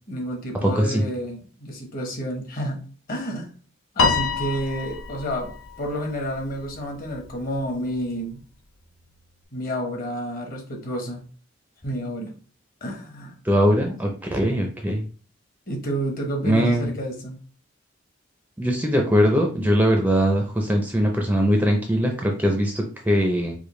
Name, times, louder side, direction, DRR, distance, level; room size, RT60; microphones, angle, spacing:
voice 1, 0.1-2.8 3.1-3.5 3.9-5.5 5.8-8.4 9.5-11.2 11.8-12.3 12.8-13.3 15.7-17.4, equal, 45° left, 2 dB, 1.0 m, -30 dB
voice 2, 0.6-1.0 13.4-15.0 16.4-16.9 18.6-23.5, equal, 10° right, 2 dB, 0.4 m, -21 dB
Piano, 4.0-6.5, left 4 dB, 85° left, 0.6 m, -26 dB
4.8 x 2.1 x 3.1 m, 0.40 s
head